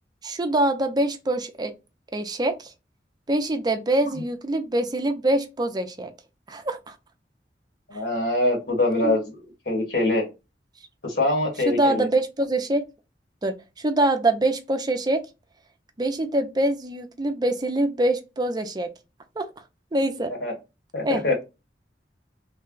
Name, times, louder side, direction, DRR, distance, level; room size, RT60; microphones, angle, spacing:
voice 1, 0.2-1.7 2.1-2.7 3.3-6.1 6.5-7.0 7.9-8.0 9.0-9.2 11.7-12.8 13.4-15.2 16.0-18.9 19.4-19.5 19.9-20.3 21.0-21.2, right 1 dB, 25° right, 0.5 m, -24 dB
voice 2, 7.9-9.2 9.6-10.2 11.0-12.1 20.4-20.5 20.9-21.4, left 2 dB, 65° left, 1.5 m, -23 dB
3.3 x 2.2 x 3.7 m
head